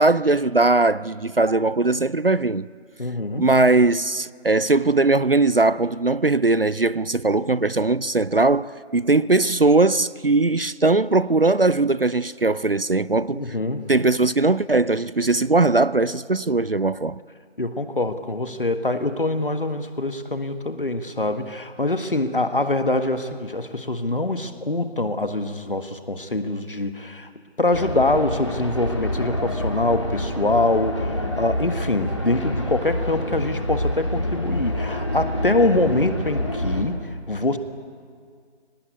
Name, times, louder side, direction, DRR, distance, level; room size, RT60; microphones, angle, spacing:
voice 1, 0.0-2.7 3.4-13.4 13.9-17.2, right 3 dB, 55° right, 0.5 m, -20 dB
voice 2, 3.0-3.5 13.3-13.9 17.6-27.3 27.6-37.0 37.3-37.6, left 2 dB, 50° left, 1.6 m, -24 dB
sound 1, 27.7-36.8, left 1 dB, 25° left, 2.0 m, -27 dB
25.0 x 18.5 x 8.3 m
figure-of-eight pair, 180°, 35 cm